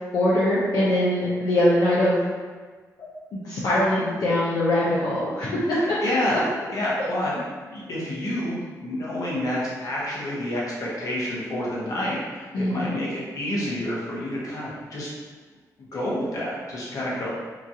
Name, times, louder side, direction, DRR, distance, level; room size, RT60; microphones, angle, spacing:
voice 1, 0.1-2.2 3.3-5.8 12.5-13.0, left 1 dB, 80° left, -9 dB, 0.6 m, -22 dB
voice 2, 6.0-6.4 6.7-7.3 7.7-15.1 15.8-17.3, left 1 dB, 60° left, -6 dB, 0.9 m, -28 dB
2.9 x 2.4 x 2.7 m, 1.4 s
wide cardioid pair, 120°, 7 cm